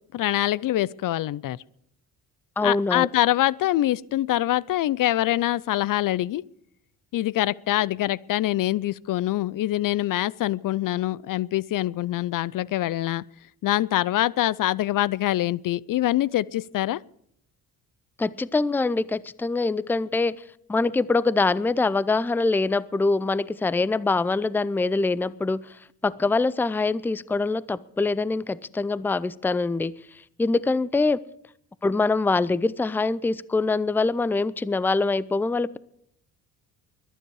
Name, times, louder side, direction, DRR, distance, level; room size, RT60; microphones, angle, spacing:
voice 1, 0.1-1.6 2.6-6.4 7.1-13.2 13.6-17.0, left 14 dB, 55° left, 22 dB, 0.5 m, -24 dB
voice 2, 2.6-3.1 18.2-20.4 20.7-25.6 26.0-30.0 30.4-31.2 31.8-35.8, left 3 dB, 5° left, 19 dB, 0.5 m, -24 dB
22.0 x 10.0 x 4.8 m, 0.71 s
supercardioid pair, 75°, 39 cm